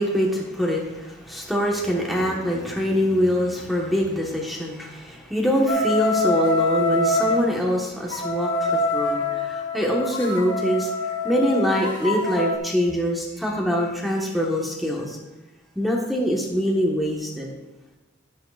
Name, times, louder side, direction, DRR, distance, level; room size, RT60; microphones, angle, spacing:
voice 1, 0.0-10.9 11.2-15.2 15.7-17.5, equal, ahead, -2 dB, 1.2 m, -24 dB
sound 1, 1.4-5.6, right 1 dB, 45° right, 2.0 m, -43 dB
sound 2, 5.7-7.4 8.1-12.6, left 2 dB, 75° left, 1.3 m, -25 dB
10.5 x 10.5 x 2.4 m, 1.1 s
head